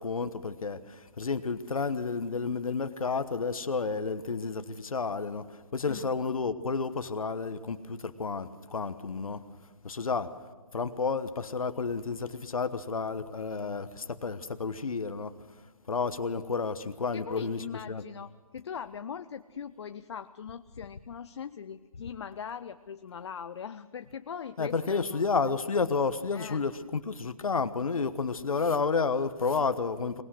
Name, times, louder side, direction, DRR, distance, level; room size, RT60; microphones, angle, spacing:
voice 1, 0.0-9.4 9.8-10.3 10.7-15.3 15.9-18.0 24.6-30.2, left 4 dB, 75° left, 1.2 m, -31 dB
voice 2, 17.1-25.5 26.3-26.6, left 7 dB, 50° left, 0.6 m, -41 dB
23.5 x 20.0 x 6.4 m
figure-of-eight pair, 145°, 18 cm